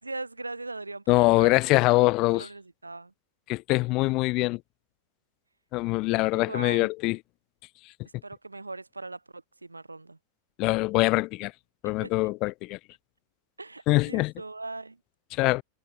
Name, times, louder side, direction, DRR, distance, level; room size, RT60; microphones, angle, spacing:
voice 1, 0.0-1.6 2.3-3.1 6.3-6.9 8.2-10.2 12.0-12.1 13.6-15.0, right 3 dB, 80° right, 4.7 m, -39 dB
voice 2, 1.1-2.5 3.5-4.6 5.7-7.2 10.6-11.5 11.8-12.8 13.9-14.3 15.3-15.6, left 22 dB, 40° left, 3.0 m, -23 dB
figure-of-eight pair, 90°, 0 cm